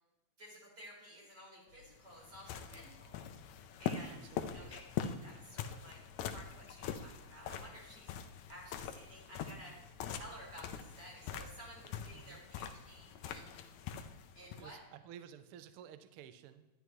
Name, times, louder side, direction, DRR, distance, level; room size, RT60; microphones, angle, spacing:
voice 1, 0.4-3.2 3.8-4.2 4.5-6.0 6.3-8.1 8.5-9.8 10.1-13.5 14.4-14.8, equal, 35° right, -4 dB, 4.6 m, -54 dB
sound 1, 1.7-14.7, left 8 dB, 80° left, 2.0 m, -43 dB
voice 2, 4.1-4.8 12.1-12.4 14.6-16.7, right 9 dB, 80° right, 11 dB, 1.2 m, -53 dB
12.0 x 11.0 x 3.1 m, 1.0 s
omnidirectional pair, 3.4 m